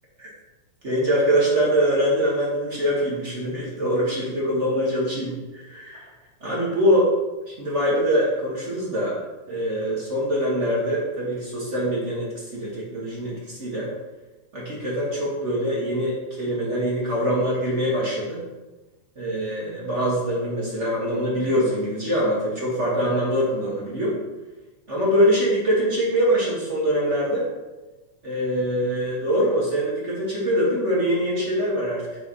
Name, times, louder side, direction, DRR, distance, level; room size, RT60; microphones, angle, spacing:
voice 1, 0.8-6.1 6.4-7.1 7.4-9.1 9.5-13.9 14.5-18.4 19.1-24.1 24.9-27.5 28.2-32.0, equal, 30° right, -5 dB, 1.4 m, -23 dB
9.3 x 5.5 x 3.1 m, 1.1 s
omnidirectional pair, 3.5 m